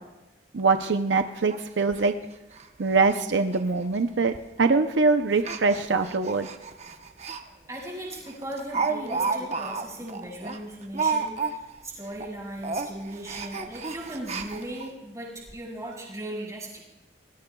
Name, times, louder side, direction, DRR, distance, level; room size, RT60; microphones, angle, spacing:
voice 1, 0.5-2.1 2.8-6.5, right 4 dB, 75° right, 7 dB, 0.6 m, -23 dB
Speech, 0.6-0.7 1.0-1.1 1.5-1.6 1.9-2.1 2.5-2.7 2.9-3.2 3.5-3.6 4.3-4.6 5.3-7.4 7.8-7.9 8.3-11.8 12.1-12.3 12.6-14.9 15.5-15.6 15.8-15.9, right 4 dB, 35° right, 0.9 m, -32 dB
voice 2, 7.7-16.9, right 1 dB, 15° right, -3 dB, 5.8 m, -38 dB
27.5 x 20.5 x 2.3 m, 1.0 s
head